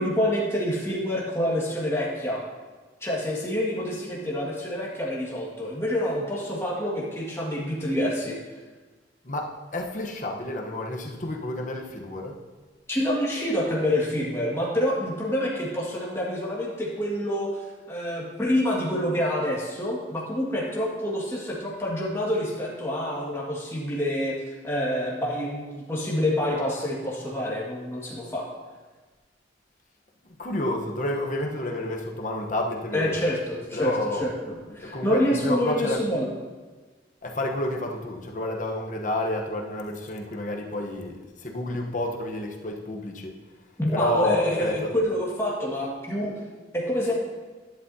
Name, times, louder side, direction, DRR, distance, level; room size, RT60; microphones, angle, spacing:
voice 1, 0.0-2.4 3.0-8.4 12.9-28.5 32.9-36.3 43.8-46.3 46.7-47.2, equal, 15° left, -4 dB, 1.8 m, -27 dB
voice 2, 9.2-12.4 30.4-33.3 33.7-34.3 34.7-36.0 37.2-43.4 43.9-44.9, left 1 dB, 40° left, 2 dB, 1.0 m, -30 dB
11.5 x 11.0 x 2.8 m, 1.3 s
head